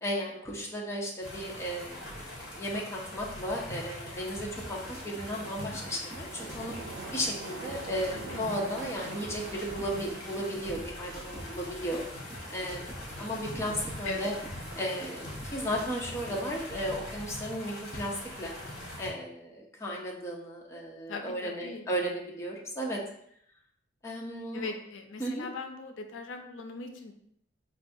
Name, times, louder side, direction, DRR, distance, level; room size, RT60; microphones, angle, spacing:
voice 1, 0.0-6.7 7.1-12.0 12.5-14.3 14.8-18.5 19.0-23.0 24.0-24.6 25.2-25.5, equal, 15° left, -3 dB, 0.6 m, -35 dB
sound 1, 1.2-19.1, left 1 dB, 55° left, 1.0 m, -42 dB
sound 2, 4.6-16.9, right 1 dB, 15° right, 0.8 m, -48 dB
Waves surf, 6.2-11.6, right 4 dB, 80° right, 0.4 m, -45 dB
voice 2, 8.1-8.4 14.0-14.3 21.1-21.9 24.5-27.1, left 4 dB, 80° left, 5 dB, 0.4 m, -40 dB
4.5 x 2.2 x 2.6 m, 0.68 s
head